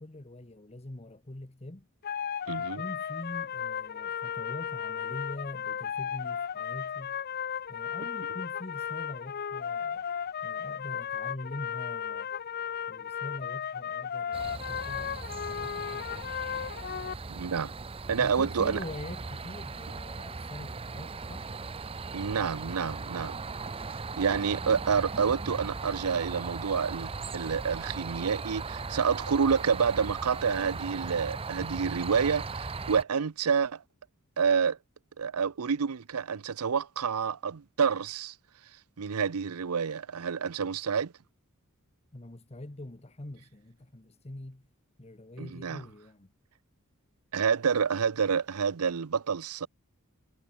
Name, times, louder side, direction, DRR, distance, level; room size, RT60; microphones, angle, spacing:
voice 1, 0.0-1.9 2.6-7.2 7.7-10.1 10.4-12.3 12.9-16.4 18.2-21.5 42.1-44.7 45.0-46.3, left 1 dB, 30° left, 1.2 m, -44 dB
sound 1, 2.0-17.1, left 8 dB, 45° left, 0.5 m, -35 dB
voice 2, 2.5-2.8 17.3-17.7 18.1-18.8 22.1-23.4 23.9-33.8 34.4-34.8 35.2-38.4 38.7-41.1 45.4-45.8 47.3-49.7, right 6 dB, 80° right, 0.6 m, -28 dB
sound 2, 14.3-33.0, right 4 dB, 25° right, 0.6 m, -38 dB
head